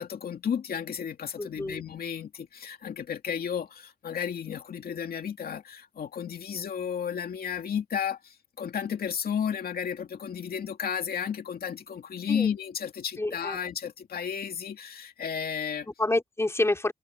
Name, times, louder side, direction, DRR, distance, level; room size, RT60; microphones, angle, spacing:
voice 1, 0.0-15.9, left 7 dB, 85° left, 2.4 m, -33 dB
voice 2, 1.4-1.8 12.3-12.5 13.2-13.6 16.0-16.9, left 2 dB, 15° left, 4.1 m, -28 dB
wide cardioid pair, 135°, 15 cm